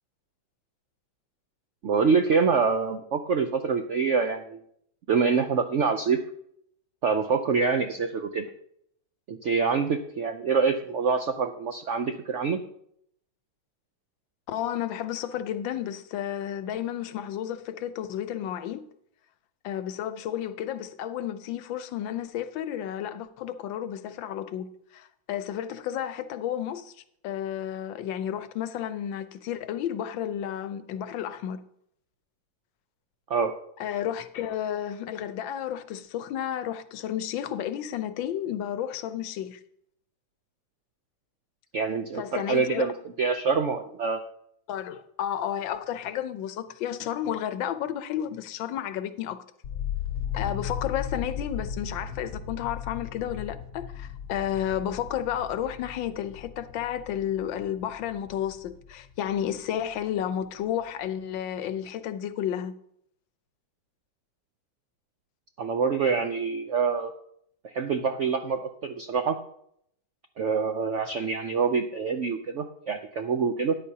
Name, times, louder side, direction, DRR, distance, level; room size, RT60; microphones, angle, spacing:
voice 1, 1.8-4.6 5.1-6.2 7.0-8.5 9.3-12.6 33.3-33.5 41.7-42.9 43.2-44.2 65.6-67.1 67.6-69.4 70.4-73.8, right 5 dB, 75° right, 0.6 m, -26 dB
voice 2, 14.5-18.8 19.6-24.7 24.9-26.9 27.2-31.6 33.8-39.6 42.1-42.9 44.7-49.4 50.3-62.7, left 10 dB, 85° left, 1.5 m, -32 dB
sound 1, 49.6-59.6 59.9-60.6, left 8 dB, 65° left, 0.8 m, -37 dB
13.0 x 10.5 x 2.8 m
omnidirectional pair, 2.0 m